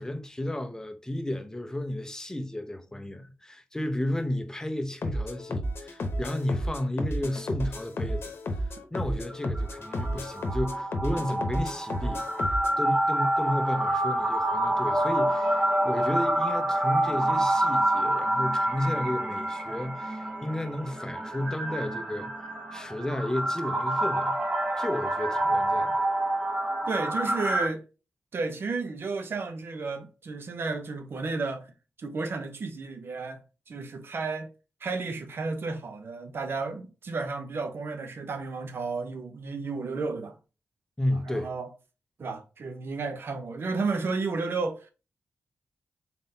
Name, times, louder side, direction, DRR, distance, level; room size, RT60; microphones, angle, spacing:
voice 1, 0.0-8.7 8.9-24.4 24.8-26.0 41.0-41.5, left 1 dB, 15° left, 0.7 m, -33 dB
sound 1, 5.0-12.8, equal, 75° left, 0.8 m, -32 dB
sound 2, 9.3-27.7, right 1 dB, 20° right, 1.0 m, -27 dB
voice 2, 26.9-27.9 28.3-31.7 32.0-34.5 34.8-40.4 41.1-41.7 42.2-44.9, right 4 dB, 65° right, 0.7 m, -32 dB
4.0 x 3.8 x 2.7 m
cardioid pair, 75°, 4 cm